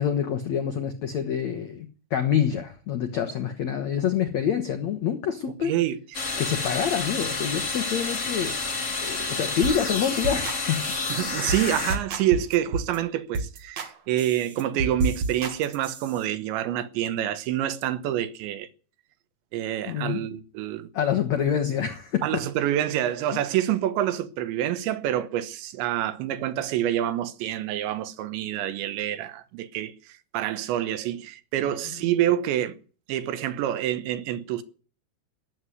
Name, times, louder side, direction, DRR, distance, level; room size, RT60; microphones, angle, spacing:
voice 1, 0.0-5.7 6.4-8.6 9.0-10.8 19.9-20.2 20.9-22.2 23.3-23.4, left 8 dB, 80° left, 1.6 m, -26 dB
voice 2, 5.6-6.0 11.1-18.7 19.5-20.9 22.2-32.8 33.1-34.6, right 12 dB, 80° right, 3.3 m, -27 dB
sound 1, 6.1-12.0, left 3 dB, 60° left, 0.7 m, -29 dB
sound 2, 9.6-9.8 10.0-10.6 10.9-11.1 11.5-11.6 11.9-13.0 13.3-13.9 14.2-16.2, right 3 dB, 45° right, 2.5 m, -30 dB
18.5 x 8.1 x 9.5 m
omnidirectional pair, 5.3 m